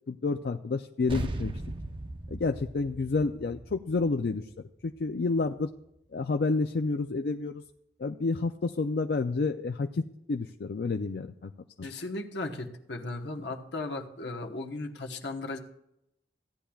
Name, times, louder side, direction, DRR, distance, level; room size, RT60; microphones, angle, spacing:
voice 1, 0.1-1.5 2.3-4.4 4.8-5.7 6.1-7.6 8.0-11.5 11.8-11.9, left 3 dB, 60° left, 6 dB, 0.4 m, -29 dB
sound 1, 1.1-5.9, right 1 dB, 30° right, 0.6 m, -39 dB
voice 2, 11.8-15.6, left 2 dB, 80° left, 2 dB, 1.1 m, -36 dB
15.5 x 10.0 x 2.3 m, 0.81 s
head